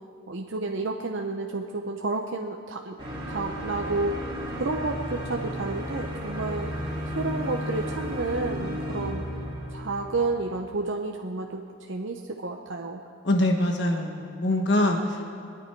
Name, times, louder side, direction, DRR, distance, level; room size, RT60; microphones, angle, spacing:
voice 1, 0.3-2.9 3.3-6.7 7.1-9.3 9.7-13.0, right 3 dB, 70° right, 2 dB, 0.8 m, -31 dB
sound 1, 3.0-10.6, equal, 25° right, 3.3 m, -33 dB
voice 2, 13.2-15.2, left 1 dB, 60° left, 3 dB, 1.1 m, -24 dB
24.0 x 10.0 x 4.6 m, 2.8 s
head